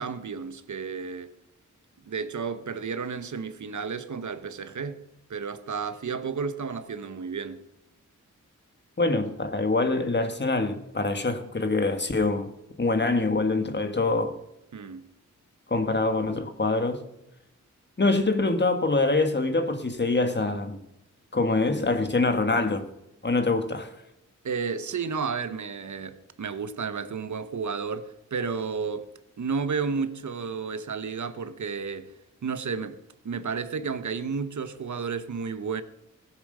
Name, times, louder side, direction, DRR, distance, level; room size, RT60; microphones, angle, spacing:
voice 1, 0.0-1.3 2.1-5.0 5.3-7.6 14.7-15.0 24.4-29.1 29.4-32.1 32.4-33.0 33.2-35.8, right 5 dB, 65° right, 1.1 m, -32 dB
voice 2, 9.0-12.5 12.8-14.3 15.7-17.0 18.0-20.8 21.3-22.8 23.2-23.9, left 3 dB, 35° left, 1.7 m, -25 dB
16.0 x 8.3 x 6.6 m
cardioid pair, 70°, 31 cm